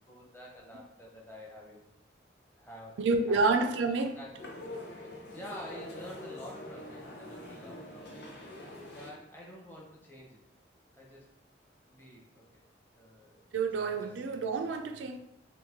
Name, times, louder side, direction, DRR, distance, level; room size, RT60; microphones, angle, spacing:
voice 1, 0.1-1.9 2.5-3.0 3.3-3.5 4.2-4.4 5.1-8.3 8.6-10.4 10.9-11.3 11.9-12.6 12.9-13.5 14.0-14.1 15.0-15.2, left 1 dB, 10° left, 0.6 m, -48 dB
voice 2, 3.0-4.2 13.5-15.2, right 3 dB, 80° right, 0.4 m, -28 dB
sound 1, 4.4-9.2, left 1 dB, 65° left, 0.7 m, -45 dB
3.1 x 2.6 x 3.5 m
head